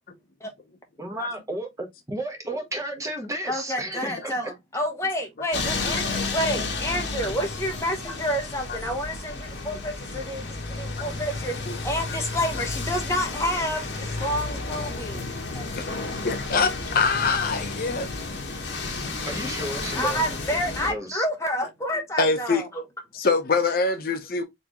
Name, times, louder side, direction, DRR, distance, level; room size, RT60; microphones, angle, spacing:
voice 1, 1.0-4.3 19.2-20.2 20.9-21.2, right 1 dB, 15° right, 1.0 m, -32 dB
voice 2, 3.5-11.6 11.8-15.6 19.9-22.8, equal, 15° left, 1.0 m, -29 dB
sound 1, 5.5-20.9, left 3 dB, 65° left, 1.3 m, -32 dB
voice 3, 15.7-18.1 22.2-22.6 23.1-24.4, left 4 dB, 50° left, 0.7 m, -25 dB
4.2 x 3.2 x 2.9 m
head